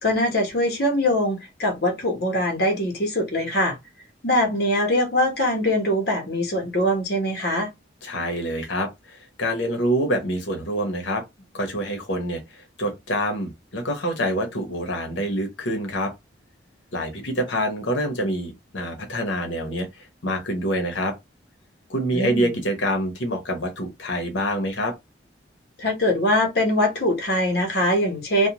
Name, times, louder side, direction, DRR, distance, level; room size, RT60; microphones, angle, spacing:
voice 1, 0.0-3.8 4.2-7.7 22.1-22.5 25.8-28.5, left 1 dB, 55° left, 1.0 m, -22 dB
voice 2, 8.0-11.2 11.5-16.1 16.9-21.1 21.9-24.9, equal, 75° left, 0.9 m, -26 dB
2.4 x 2.2 x 2.9 m
head